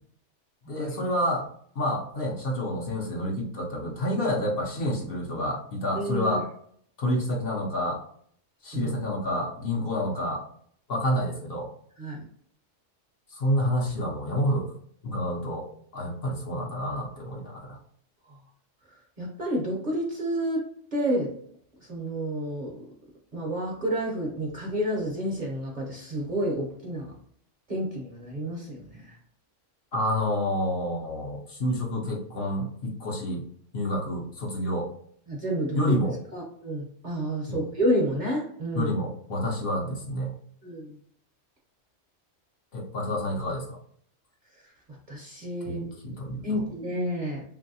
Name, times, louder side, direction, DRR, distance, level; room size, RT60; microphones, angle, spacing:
voice 1, 0.7-1.5 1.8-6.5 7.0-8.0 8.6-10.4 10.9-11.7 13.3-14.7 15.0-15.7 15.9-17.8 29.9-33.4 33.7-34.9 35.7-36.2 37.5-37.7 38.7-40.4 42.7-43.8 45.6-46.6, left 1 dB, 55° left, -2 dB, 0.8 m, -28 dB
voice 2, 5.9-6.4 8.7-8.9 12.0-12.3 18.3-18.4 18.9-20.6 20.9-21.3 21.8-22.7 23.3-27.1 27.7-29.2 35.3-36.0 36.3-38.9 40.6-41.0 44.6-44.7 45.1-45.9 46.4-47.4, equal, 45° right, -2 dB, 0.7 m, -30 dB
3.0 x 2.6 x 2.6 m, 0.62 s
omnidirectional pair, 1.3 m